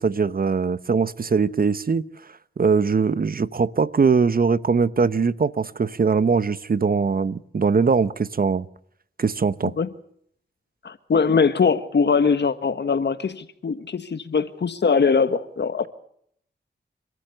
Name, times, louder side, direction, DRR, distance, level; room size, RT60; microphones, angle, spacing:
voice 1, 0.0-2.1 2.6-8.7 9.2-9.7, right 5 dB, 50° right, 1.0 m, -21 dB
voice 2, 10.8-15.9, left 5 dB, 70° left, 1.6 m, -21 dB
30.0 x 13.5 x 6.8 m
wide cardioid pair, 75°, 19 cm